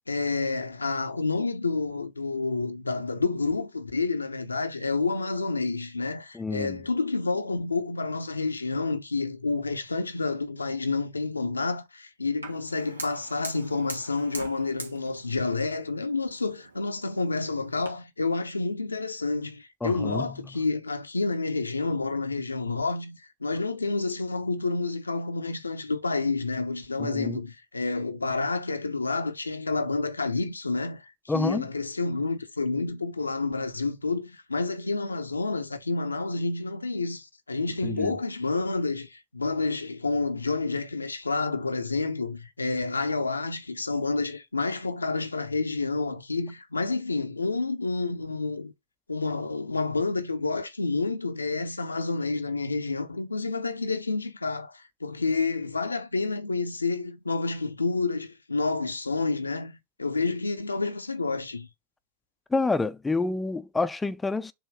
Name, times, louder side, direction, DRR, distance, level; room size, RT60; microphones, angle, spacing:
voice 1, 0.1-48.7 49.1-61.7, left 3 dB, 80° left, 0.8 m, -29 dB
voice 2, 6.3-6.8 19.8-20.4 27.0-27.4 31.3-31.6 37.8-38.2 62.5-64.5, left 3 dB, 10° left, 0.6 m, -28 dB
Fire, 12.4-17.9, right 2 dB, 80° right, 1.5 m, -43 dB
7.1 x 3.0 x 4.7 m
figure-of-eight pair, 90°, 0 cm